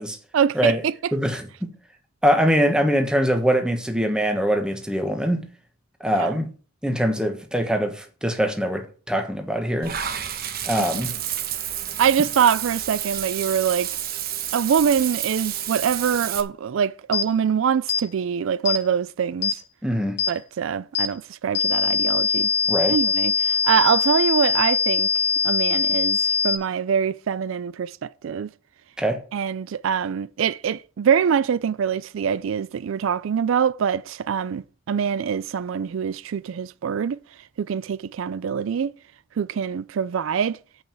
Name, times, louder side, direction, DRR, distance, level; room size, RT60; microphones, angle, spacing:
voice 1, 0.3-1.1 6.1-6.4 10.7-10.8 12.0-13.9 14.5-19.6 20.3-22.5 22.9-25.1 25.4-28.5 29.3-37.2 37.6-38.9 39.4-40.6, right 7 dB, 75° right, 0.4 m, -24 dB
voice 2, 1.1-1.7 2.2-5.5 6.0-6.5 6.8-9.9 10.7-11.1 19.8-20.2 22.7-23.0 29.0-29.2, equal, 5° right, 1.3 m, -23 dB
Water / Bathtub (filling or washing), 9.8-16.4, right 10 dB, 45° right, 1.1 m, -30 dB
sound 1, 17.1-17.3 17.9-18.1 18.7-18.8 19.4-19.6 20.2-20.3 21.0-21.1 21.6-26.6, left 6 dB, 55° left, 1.5 m, -22 dB
8.8 x 5.4 x 7.4 m
head